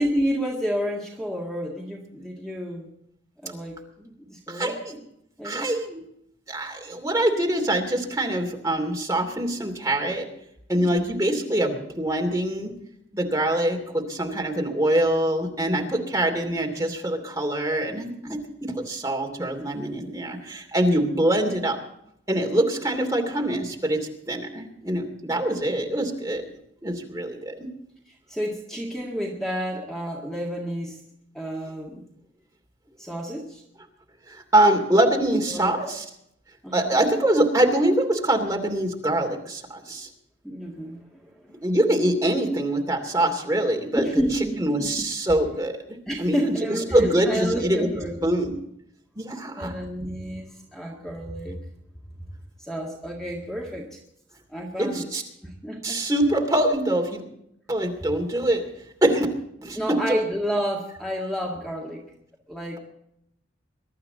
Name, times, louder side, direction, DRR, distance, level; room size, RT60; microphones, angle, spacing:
voice 1, 0.0-2.9 3.4-5.0 5.4-5.7 10.8-11.1 18.2-18.4 28.1-31.0 31.3-32.1 33.0-33.6 35.5-35.7 36.6-37.0 40.4-41.6 43.9-45.1 46.1-48.3 49.5-51.6 52.6-54.0 54.5-55.1 55.4-56.0 59.7-62.0 62.5-62.8, equal, ahead, -2 dB, 1.9 m, -30 dB
voice 2, 4.5-4.9 5.4-6.0 6.5-10.2 10.7-12.7 13.1-21.8 22.3-26.4 26.8-27.7 34.3-36.0 36.7-40.1 41.6-44.0 44.6-45.7 46.2-46.5 46.9-47.9 48.2-48.5 49.2-49.7 54.8-55.2 55.8-57.2 57.7-58.6 59.0-59.3 59.6-60.0, right 1 dB, 15° right, 1 dB, 2.7 m, -24 dB
23.0 x 12.0 x 4.0 m, 0.76 s
head